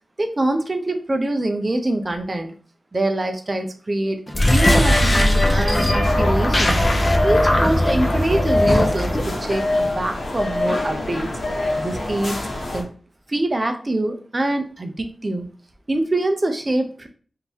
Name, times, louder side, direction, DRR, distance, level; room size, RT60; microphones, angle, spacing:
voice 1, 0.2-2.5 2.9-6.8 7.2-11.3 11.8-12.4 12.7-12.9 13.3-15.5 15.9-17.1, right 1 dB, 30° right, 5 dB, 0.6 m, -24 dB
sound 1, 4.3-9.3, left 1 dB, 30° left, 0.7 m, -19 dB
sound 2, 6.0-12.8, left 2 dB, 55° left, 1.3 m, -24 dB
3.7 x 2.7 x 4.4 m, 0.40 s
wide cardioid pair, 110°, 0 cm